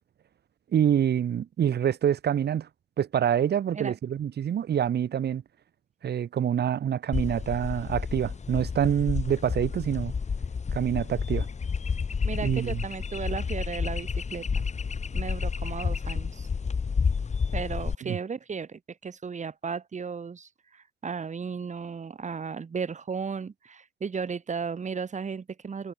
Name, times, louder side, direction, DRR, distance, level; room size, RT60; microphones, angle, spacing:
voice 1, 0.7-2.7 3.0-5.4 6.0-10.1 10.7-11.5 12.4-12.8 18.0-18.2, right 9 dB, 55° right, 1.6 m, -26 dB
sound 1, 7.1-17.9, left 5 dB, 35° left, 2.2 m, -30 dB
voice 2, 12.2-14.5 15.1-16.5 17.5-25.9, right 5 dB, 35° right, 2.7 m, -35 dB
cardioid pair, 90°, 20 cm